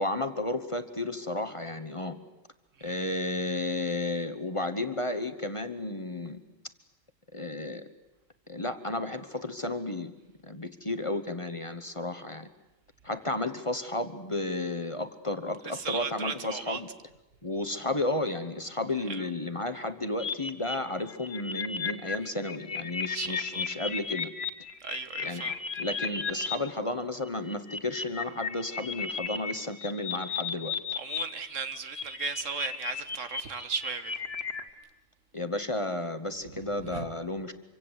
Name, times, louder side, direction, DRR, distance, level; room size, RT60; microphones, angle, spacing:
voice 1, 0.0-2.2 2.8-6.4 7.3-7.8 8.5-10.1 10.4-12.5 13.0-16.9 17.4-24.3 25.2-25.4 25.8-30.8 35.3-37.5, left 2 dB, 25° left, 1.1 m, -33 dB
voice 2, 15.6-16.8 19.1-19.3 23.1-23.6 24.8-25.6 31.0-34.3 36.9-37.1, right 5 dB, 75° right, 1.6 m, -36 dB
sound 1, 20.2-26.6 27.3-31.2 31.5-34.7, left 5 dB, 55° left, 1.6 m, -34 dB
26.0 x 24.5 x 8.1 m
omnidirectional pair, 1.3 m